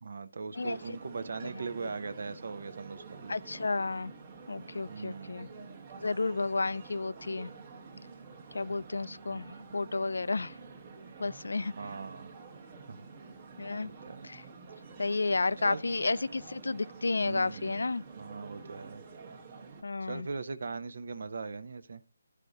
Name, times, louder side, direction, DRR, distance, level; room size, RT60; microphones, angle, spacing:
voice 1, 0.0-3.4 4.9-5.5 9.3-9.4 11.7-12.3 12.9-13.0 13.8-14.3 15.6-15.8 17.2-17.8 18.2-19.0 20.0-22.0, right 4 dB, 45° right, 0.7 m, -40 dB
sound 1, 0.5-19.8, right 4 dB, 20° right, 1.0 m, -49 dB
voice 2, 3.3-4.1 4.5-5.5 6.0-7.5 8.5-9.5 9.7-10.5 11.2-11.7 13.6-13.9 14.2-14.4 15.0-18.0 19.8-20.3, left 3 dB, 80° left, 0.4 m, -31 dB
12.0 x 4.9 x 4.0 m
hypercardioid pair, 175°, 0 cm